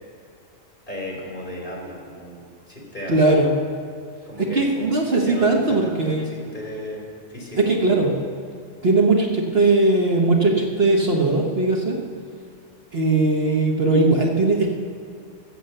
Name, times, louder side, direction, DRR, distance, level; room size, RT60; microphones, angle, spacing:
voice 1, 0.9-3.5 4.3-8.3, left 1 dB, 40° left, -2 dB, 3.1 m, -35 dB
voice 2, 3.1-3.5 4.5-6.3 7.7-8.1 8.8-12.0 12.9-14.7, right 2 dB, 55° right, 0 dB, 1.5 m, -19 dB
14.5 x 7.6 x 6.7 m, 2.3 s
omnidirectional pair, 1.3 m